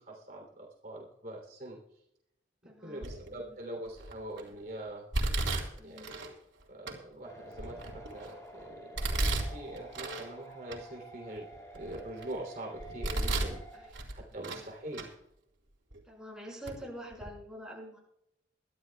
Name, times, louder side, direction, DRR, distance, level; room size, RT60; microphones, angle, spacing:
voice 1, 0.0-2.0 2.6-5.1 5.8-6.3 6.7-11.5 11.7-15.1, right 1 dB, 45° right, -1 dB, 3.1 m, -44 dB
voice 2, 2.7-3.0 3.3-3.6 5.8-6.1 13.7-13.9 14.3-14.6 16.0-18.0, equal, 5° right, -2 dB, 5.7 m, -46 dB
Domestic sounds home sounds, 3.0-3.4 4.0-4.4 5.1-6.3 6.9-7.0 7.5-8.3 9.0-10.3 10.7-10.8 11.4-12.3 12.8-13.6 13.9-14.7 14.9-15.1 15.9-16.0 16.7-16.8 17.1-17.3, right 2 dB, 75° right, 4.1 m, -33 dB
sound 1, 7.2-13.9, right 2 dB, 15° left, 5.0 m, -50 dB
23.0 x 14.0 x 2.3 m, 0.78 s
head